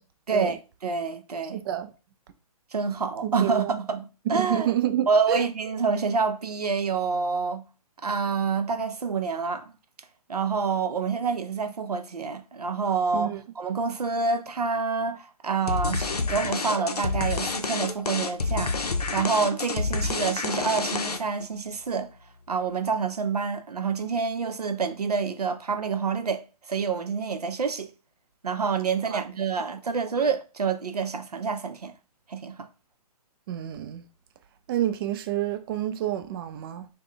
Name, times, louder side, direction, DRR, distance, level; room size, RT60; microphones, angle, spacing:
voice 1, 0.3-1.6 2.7-4.7 5.1-7.7 8.0-9.7 10.3-18.8 19.1-22.1 22.5-27.9 28.4-31.9 32.3-32.7, right 5 dB, 90° right, 0.5 m, -27 dB
voice 2, 1.5-1.9 3.2-3.8 4.3-5.4 13.1-13.4 29.1-29.2 33.5-34.0 34.7-36.9, right 12 dB, 40° right, 0.5 m, -29 dB
sound 1, 15.7-21.4, left 4 dB, 90° left, 0.5 m, -28 dB
3.6 x 2.2 x 3.4 m
figure-of-eight pair, 130°, 19 cm